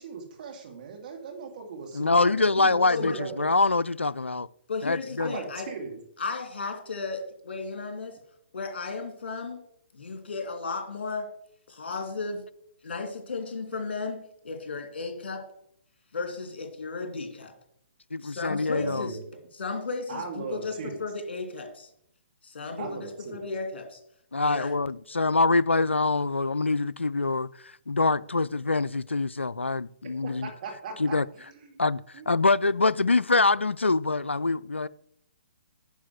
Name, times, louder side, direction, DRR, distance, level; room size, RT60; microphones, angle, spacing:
voice 1, 0.0-3.5 5.2-6.0 18.7-19.2 20.1-21.0 22.8-23.5 30.2-31.8 32.1-32.3, right 5 dB, 45° right, 2.0 m, -39 dB
voice 2, 1.9-4.5 4.8-5.4 18.1-19.1 24.3-27.5 27.9-30.5 31.0-31.3 31.8-34.9, left 3 dB, 85° left, 0.3 m, -24 dB
voice 3, 4.7-5.7 6.2-8.2 8.5-9.6 9.9-11.3 11.7-12.4 12.8-14.2 14.4-15.4 16.1-17.5 18.2-19.2 19.6-20.7 21.0-21.9 22.4-24.0 24.4-24.8, left 4 dB, 55° left, 2.6 m, -34 dB
10.0 x 4.8 x 6.0 m
figure-of-eight pair, 130°, 6 cm